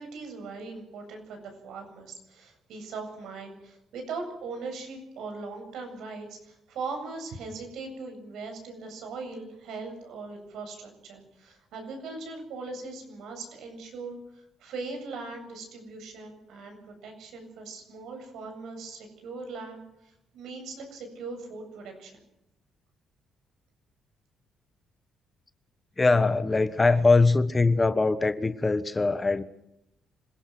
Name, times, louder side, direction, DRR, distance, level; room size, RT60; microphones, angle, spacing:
voice 1, 0.0-22.2, right 3 dB, 80° right, 4 dB, 8.0 m, -40 dB
voice 2, 26.0-29.4, left 3 dB, 20° left, 12 dB, 1.3 m, -22 dB
26.0 x 17.5 x 6.2 m, 0.84 s
cardioid pair, 90°, 0 cm